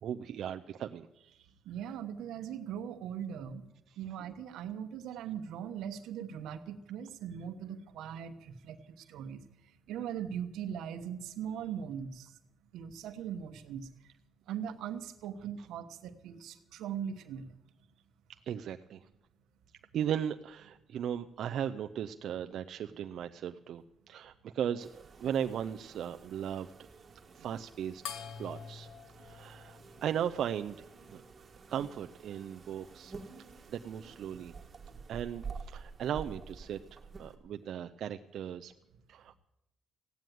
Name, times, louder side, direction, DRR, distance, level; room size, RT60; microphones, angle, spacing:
voice 1, 0.0-1.5 18.5-19.0 19.9-26.7 27.3-28.9 29.2-31.2 31.7-33.1 33.7-34.5 35.1-38.7 39.1-39.4, right 9 dB, 70° right, 7 dB, 0.5 m, -37 dB
voice 2, 1.6-3.7 4.0-9.4 9.9-12.4 12.7-13.9 14.5-17.6 27.4-27.5 34.3-34.4 34.9-35.0, right 8 dB, 90° right, 9 dB, 1.1 m, -40 dB
sound 1, 24.8-37.4, right 5 dB, 35° right, 1.7 m, -50 dB
sound 2, 28.0-30.8, left 7 dB, 90° left, 1.1 m, -46 dB
16.0 x 9.2 x 9.2 m, 0.91 s
cardioid pair, 110°, 0 cm